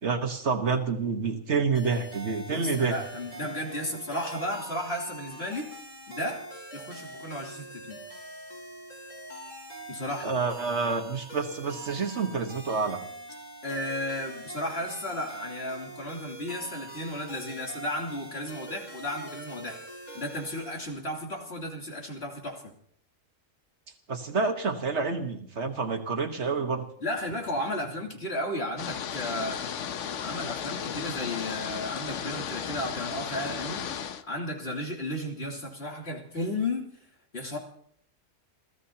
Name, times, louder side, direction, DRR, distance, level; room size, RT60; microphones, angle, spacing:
voice 1, 0.0-3.0 10.2-13.0 24.1-26.9, right 4 dB, 60° right, 6 dB, 1.7 m, -28 dB
sound 1, 1.7-20.9, right 2 dB, 30° left, 5.2 m, -43 dB
voice 2, 2.5-5.7 6.1-6.4 6.7-8.0 9.9-10.3 13.6-19.8 20.1-22.7 27.0-29.6 30.2-33.8 34.3-36.9 37.3-37.6, left 1 dB, 50° left, -1 dB, 3.3 m, -34 dB
sound 2, 28.8-34.2, left 8 dB, 65° left, 1.1 m, -35 dB
29.5 x 15.0 x 2.9 m, 0.64 s
omnidirectional pair, 1.4 m